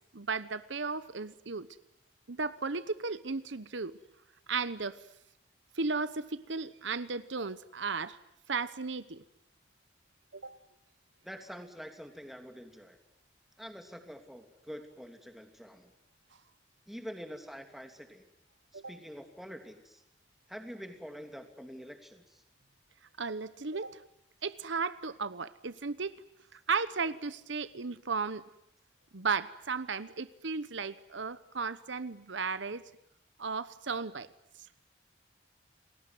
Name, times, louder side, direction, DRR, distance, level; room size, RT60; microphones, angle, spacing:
voice 1, 0.1-1.7 2.3-3.9 4.5-5.0 5.8-8.2 8.5-9.2 10.3-10.6 18.7-19.0 23.2-24.0 24.4-26.1 26.5-28.4 29.1-32.8 33.4-34.3, right 4 dB, 75° right, 15 dB, 1.0 m, -35 dB
voice 2, 11.2-13.0 13.6-15.9 16.9-18.2 18.7-20.0 20.5-22.4, equal, ahead, 6 dB, 2.9 m, -46 dB
29.5 x 21.0 x 9.5 m, 0.79 s
head